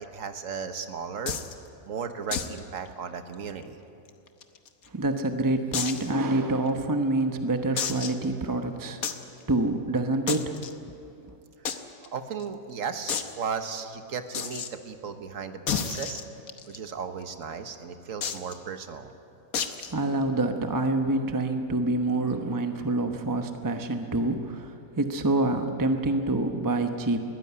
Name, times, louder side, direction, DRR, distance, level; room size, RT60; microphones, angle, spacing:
voice 1, 0.0-1.4 1.9-3.8 11.6-16.2 16.7-19.1, right 6 dB, 65° right, 8 dB, 1.5 m, -36 dB
sound 1, 1.3-1.5 2.3-2.6 2.9-3.0 3.3-3.4 4.1-4.9 5.7-6.1 6.7-6.8 7.8-8.2 9.0-9.2 10.3-10.7 11.6-11.8 12.0-12.1 12.4-12.5 13.1-13.3 14.3-14.7 15.7-16.8 18.2-18.5 19.5-19.9, left 7 dB, 85° left, 1.5 m, -31 dB
voice 2, 4.9-9.0 9.5-10.5 19.9-24.7 25.0-27.2, right 2 dB, 15° right, 5 dB, 0.9 m, -26 dB
20.5 x 15.5 x 9.8 m, 2.7 s
omnidirectional pair, 1.5 m